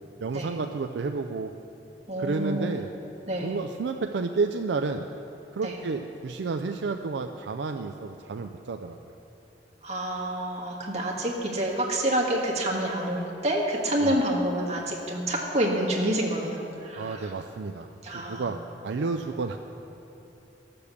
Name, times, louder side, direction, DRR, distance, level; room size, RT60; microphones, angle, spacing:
voice 1, 0.2-1.5 2.2-2.9 3.4-5.1 5.5-9.0 14.0-14.2 16.9-18.6 18.8-19.6, right 4 dB, 70° right, 6 dB, 0.4 m, -31 dB
voice 2, 2.1-2.7 3.3-3.5 5.6-5.8 9.8-17.3 18.0-18.5, right 1 dB, 40° right, -2 dB, 1.7 m, -28 dB
13.5 x 6.9 x 6.9 m, 2.9 s
head